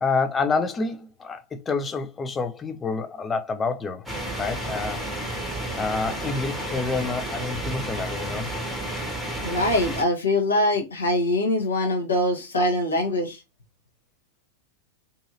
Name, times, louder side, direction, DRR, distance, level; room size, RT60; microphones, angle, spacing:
voice 1, 0.0-4.1 4.4-5.4 5.8-8.5, left 4 dB, 20° left, 0.5 m, -28 dB
sound 1, 4.1-10.0, right 1 dB, ahead, 0.9 m, -31 dB
voice 2, 9.4-13.4, left 1 dB, 70° left, 0.9 m, -23 dB
2.7 x 2.7 x 2.5 m
figure-of-eight pair, 90°, 0 cm